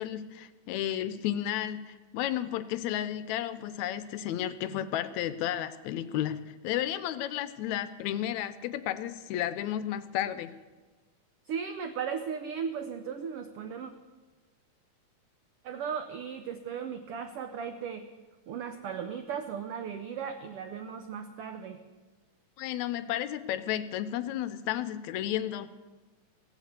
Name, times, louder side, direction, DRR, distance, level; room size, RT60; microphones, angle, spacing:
voice 1, 0.0-10.5 22.6-25.7, left 11 dB, 80° left, 13 dB, 1.8 m, -32 dB
voice 2, 11.4-13.9 15.6-18.1 18.5-21.8, right 7 dB, 85° right, 7 dB, 1.3 m, -36 dB
16.0 x 8.2 x 8.0 m, 1.3 s
omnidirectional pair, 3.5 m